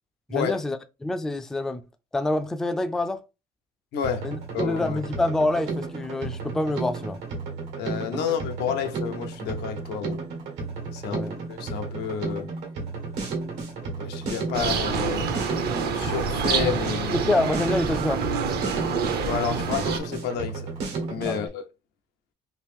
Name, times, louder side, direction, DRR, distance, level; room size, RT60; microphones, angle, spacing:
voice 1, 0.3-1.8 2.1-3.2 4.2-7.2 8.1-8.2 11.1-11.4 17.1-18.2 21.2-21.5, left 2 dB, 5° left, 0.3 m, -27 dB
voice 2, 3.9-5.0 7.8-10.2 10.9-12.5 14.0-15.3 15.9-17.2 19.3-20.7 21.1-21.6, left 8 dB, 80° left, 0.6 m, -30 dB
Drum kit, 4.0-21.5, right 4 dB, 90° right, 1.3 m, -33 dB
sound 1, 14.5-20.0, right 6 dB, 70° right, 0.7 m, -27 dB
3.0 x 2.6 x 3.4 m
cardioid pair, 110°, 17 cm